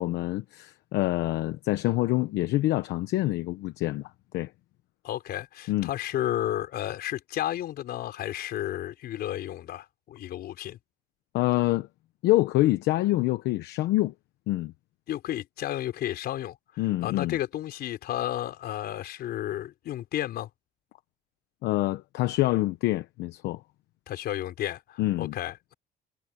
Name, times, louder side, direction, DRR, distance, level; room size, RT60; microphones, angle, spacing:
voice 1, 0.0-4.5 5.7-5.9 11.3-11.9 12.2-14.1 14.5-14.7 16.8-17.4 21.6-23.6 25.0-25.3, left 17 dB, 85° left, 1.0 m, -26 dB
voice 2, 5.0-10.8 15.1-20.5 24.1-25.7, left 12 dB, 70° left, 4.5 m, -32 dB
cardioid pair, 110°, 17 cm